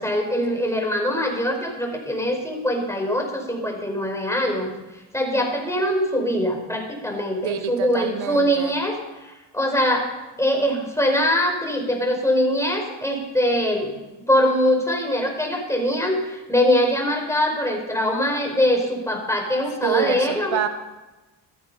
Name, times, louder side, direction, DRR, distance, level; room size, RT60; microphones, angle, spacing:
voice 1, 0.0-4.7 5.1-10.1 10.4-13.9 14.3-20.6, equal, 5° left, 1 dB, 5.2 m, -23 dB
voice 2, 7.4-8.7 19.8-20.7, right 10 dB, 80° right, 10 dB, 1.2 m, -26 dB
14.0 x 14.0 x 5.7 m, 1.1 s
supercardioid pair, 55°, 46 cm